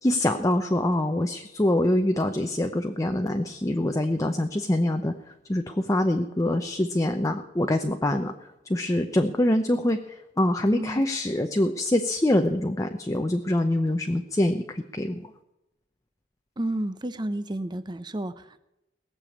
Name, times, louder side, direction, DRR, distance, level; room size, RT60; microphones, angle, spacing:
voice 1, 0.0-8.3 8.7-15.3, left 1 dB, 20° left, 5 dB, 0.7 m, -25 dB
voice 2, 10.7-11.0 16.6-18.6, right 1 dB, 25° right, 13 dB, 0.8 m, -31 dB
18.0 x 7.0 x 8.5 m, 0.90 s
head